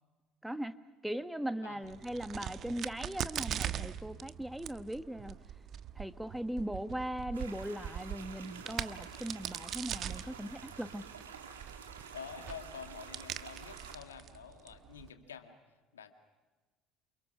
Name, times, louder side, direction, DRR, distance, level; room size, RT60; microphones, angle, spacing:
voice 1, 0.4-0.7 1.0-5.4 6.0-11.0, right 1 dB, 5° right, 10 dB, 1.4 m, -39 dB
voice 2, 1.4-1.9 11.8-16.1, left 7 dB, 80° left, 7 dB, 2.1 m, -49 dB
Crack, 1.8-15.1, right 9 dB, 50° right, 1.2 m, -42 dB
sound 1, 7.3-14.0, right 6 dB, 80° right, 2.4 m, -50 dB
29.0 x 28.5 x 6.1 m, 1.3 s
figure-of-eight pair, 60°, 0 cm